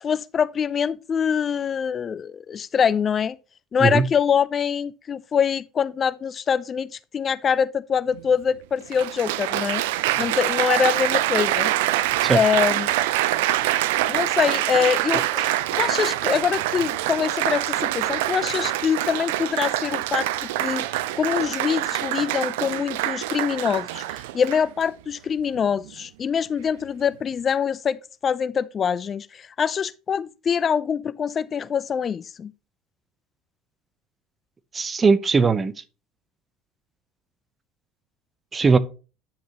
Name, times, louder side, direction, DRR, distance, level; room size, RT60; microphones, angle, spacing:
voice 1, 0.0-3.4 3.7-9.8 10.2-11.7 12.3-12.9 14.1-32.5, left 7 dB, 35° left, 0.4 m, -24 dB
Applause, 8.2-8.3 8.9-24.8 25.6-25.9, right 15 dB, 75° right, 0.5 m, -25 dB
voice 2, 34.7-35.8 38.5-38.8, right 4 dB, 25° right, 0.8 m, -19 dB
9.9 x 6.5 x 3.0 m
hypercardioid pair, 70°, 0 cm